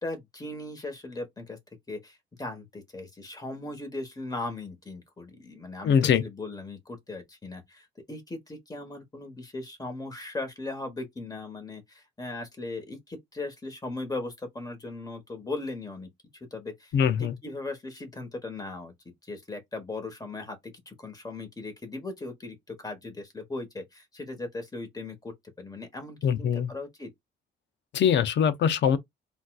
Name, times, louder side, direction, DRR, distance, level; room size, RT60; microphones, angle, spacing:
voice 1, 0.0-1.6 1.9-16.9 17.4-27.1, left 2 dB, 20° left, 1.3 m, -38 dB
voice 2, 5.8-6.2 16.9-17.3 26.2-26.7 27.9-29.0, left 8 dB, 65° left, 0.6 m, -22 dB
4.0 x 2.4 x 2.4 m
cardioid pair, 90°, 20 cm